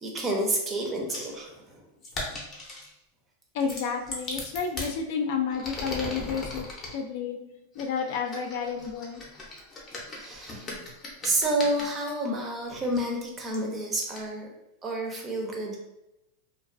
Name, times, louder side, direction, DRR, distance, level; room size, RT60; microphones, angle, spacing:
voice 1, 0.0-1.8 10.0-10.7 11.2-14.5 14.8-15.8, right 1 dB, 20° right, 0 dB, 0.5 m, -29 dB
sound 1, 1.1-1.3 2.0-2.9 3.6-4.9 5.5-6.9 7.8-12.1 12.9-13.0 13.5-13.6 14.1-14.2, left 2 dB, 25° left, 0.7 m, -38 dB
voice 2, 3.5-6.7 6.9-9.2, left 6 dB, 60° left, 3 dB, 0.4 m, -31 dB
2.3 x 2.2 x 2.5 m, 0.91 s
supercardioid pair, 135°, 0 cm